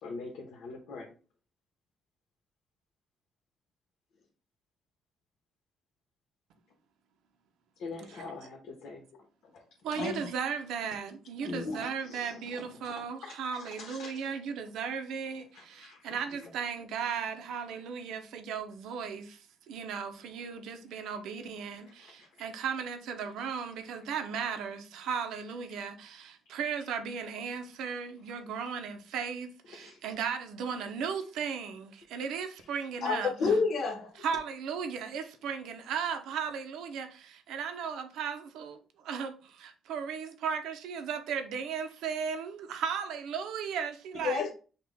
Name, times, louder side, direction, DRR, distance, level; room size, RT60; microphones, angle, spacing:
voice 1, 0.0-1.1 7.8-9.0 9.5-9.6 12.0-14.1 15.5-16.5 22.0-22.3 29.7-30.0, left 3 dB, 75° left, 1.3 m, -45 dB
voice 2, 8.2-8.5 9.9-10.3 11.4-11.9 33.0-34.1 44.2-44.5, left 4 dB, 50° left, 0.9 m, -30 dB
voice 3, 9.8-33.6 34.2-44.4, right 6 dB, 85° right, 0.7 m, -36 dB
5.9 x 2.4 x 3.5 m
cardioid pair, 135°, 0 cm